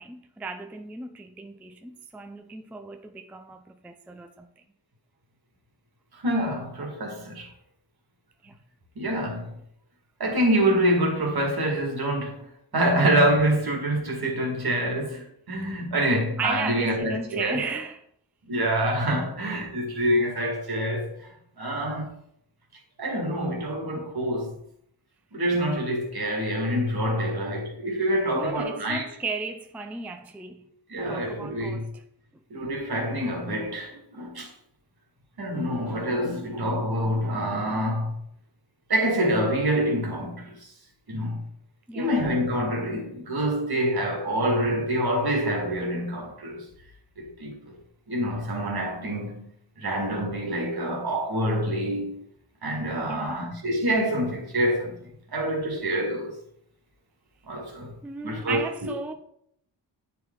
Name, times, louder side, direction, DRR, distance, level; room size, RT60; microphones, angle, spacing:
voice 1, 0.0-4.5 6.3-6.5 8.4-8.6 16.4-18.0 28.2-30.7 31.0-32.0 41.9-42.2 53.0-53.6 58.0-59.1, right 4 dB, 5° right, 0.4 m, -36 dB
voice 2, 6.2-7.5 9.0-9.5 10.2-12.4 12.7-17.6 18.5-21.3 21.6-22.1 23.0-24.5 25.3-29.0 30.9-31.9 32.5-34.5 35.4-38.1 38.9-40.6 41.1-41.4 41.9-46.7 47.2-47.5 48.1-49.5 49.8-52.1 52.6-54.9 55.3-56.4 57.5-57.9 58.2-58.6, right 1 dB, 55° right, 2.1 m, -26 dB
9.3 x 4.7 x 3.8 m
wide cardioid pair, 125°, 43 cm